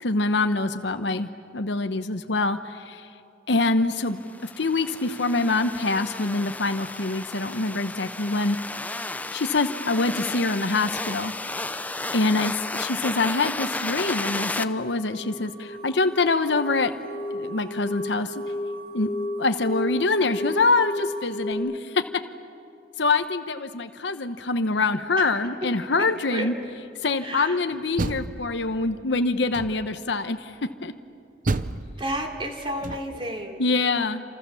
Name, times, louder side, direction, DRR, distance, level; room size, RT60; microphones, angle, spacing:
voice 1, 0.0-3.1 3.5-8.6 9.3-16.9 17.3-18.4 18.9-19.1 19.4-22.0 23.0-26.5 27.0-30.9 33.6-34.2, left 3 dB, 75° left, 8 dB, 1.0 m, -25 dB
sound 1, 4.2-14.6, left 2 dB, 10° left, 0.6 m, -33 dB
sound 2, 14.2-21.5, left 1 dB, 25° left, 3.9 m, -34 dB
voice 2, 27.2-27.6 32.0-33.6, right 1 dB, 30° right, 2 dB, 3.1 m, -31 dB
Door, 27.7-29.0 29.5-30.1 31.4-33.3, right 2 dB, 50° right, 0.7 m, -31 dB
28.5 x 27.5 x 7.1 m, 2.5 s
head